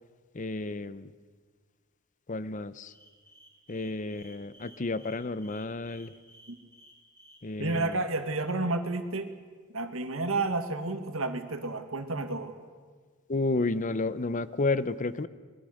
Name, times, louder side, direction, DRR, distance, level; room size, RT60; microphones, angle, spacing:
voice 1, 0.3-1.1 2.3-2.9 3.7-6.1 7.4-8.0 13.3-15.3, left 3 dB, 40° left, 15 dB, 0.7 m, -31 dB
sound 1, 2.9-7.9, equal, 10° left, 7.8 m, -55 dB
voice 2, 7.6-9.3 9.7-12.6, right 2 dB, 80° right, 7 dB, 1.8 m, -31 dB
24.5 x 21.0 x 6.5 m, 1.5 s
head